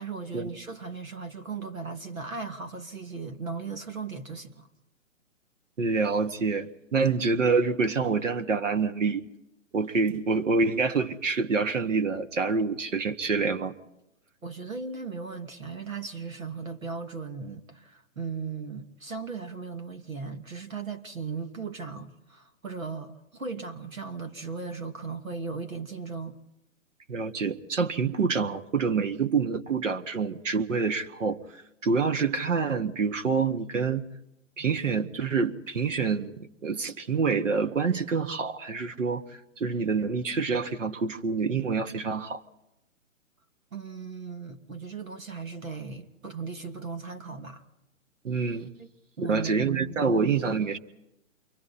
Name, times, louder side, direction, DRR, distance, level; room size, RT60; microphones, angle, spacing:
voice 1, 0.0-4.7 14.4-26.4 34.6-34.8 43.7-47.6 48.8-48.9 49.2-50.2, right 4 dB, 85° right, 2.5 m, -37 dB
voice 2, 5.8-9.2 9.7-13.8 27.1-31.4 31.8-34.1 34.6-39.2 39.6-42.4 48.2-48.7 49.2-50.8, right 5 dB, 65° right, 1.7 m, -27 dB
28.5 x 24.0 x 4.3 m
figure-of-eight pair, 135°, 40 cm